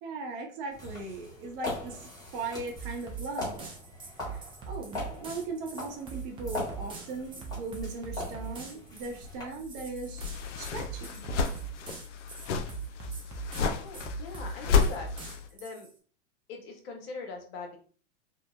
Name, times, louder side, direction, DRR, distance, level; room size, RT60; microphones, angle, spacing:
voice 1, 0.0-3.7 4.3-10.2 10.6-11.2, right 3 dB, 45° right, 2 dB, 0.8 m, -38 dB
sound 1, 0.7-9.4, left 2 dB, 10° left, 1.2 m, -41 dB
sound 2, 2.8-15.9, right 6 dB, 15° right, 0.5 m, -42 dB
sound 3, 9.2-15.5, left 5 dB, 70° left, 0.5 m, -32 dB
voice 2, 13.7-15.1 15.5-15.9 16.5-17.8, left 3 dB, 50° left, 3 dB, 0.8 m, -41 dB
2.8 x 2.1 x 2.3 m, 0.42 s
hypercardioid pair, 110°, 37 cm